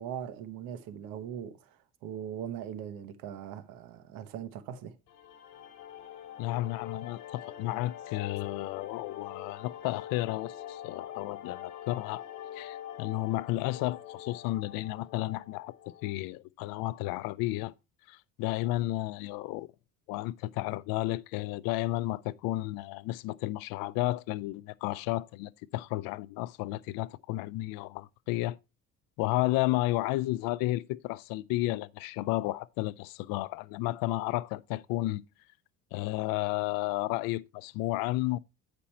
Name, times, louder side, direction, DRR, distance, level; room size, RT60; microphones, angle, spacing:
voice 1, 0.0-5.0, right 9 dB, 85° right, 1.0 m, -40 dB
sound 1, 5.1-16.1, left 11 dB, 55° left, 1.2 m, -44 dB
voice 2, 6.4-12.2 12.5-15.7 16.0-17.7 18.1-19.7 20.1-28.6 29.2-35.2 35.9-38.4, left 17 dB, 90° left, 0.5 m, -32 dB
8.7 x 5.2 x 4.2 m
cardioid pair, 145°, 34 cm